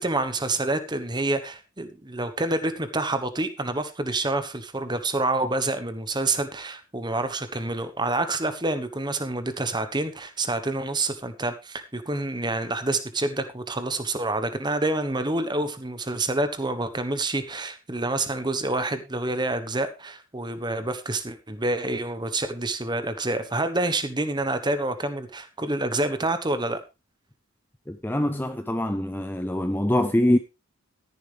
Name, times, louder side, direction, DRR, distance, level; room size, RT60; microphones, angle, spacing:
voice 1, 0.0-26.8, right 2 dB, 20° right, 1.2 m, -27 dB
voice 2, 27.9-30.4, left 1 dB, 10° left, 0.5 m, -24 dB
13.5 x 10.5 x 3.5 m
head